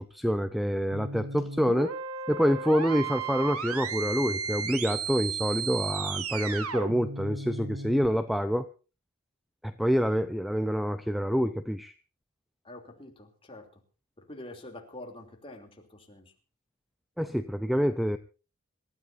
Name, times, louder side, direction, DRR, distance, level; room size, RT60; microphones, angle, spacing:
voice 1, 0.0-1.9 2.3-8.7 9.6-11.9 17.2-18.2, equal, ahead, 10 dB, 0.6 m, -27 dB
sound 1, 0.9-8.1, right 5 dB, 70° right, 2.0 m, -34 dB
voice 2, 12.6-13.8 14.2-16.3, left 1 dB, 25° left, 3 dB, 3.1 m, -46 dB
26.5 x 14.0 x 2.7 m, 0.34 s
head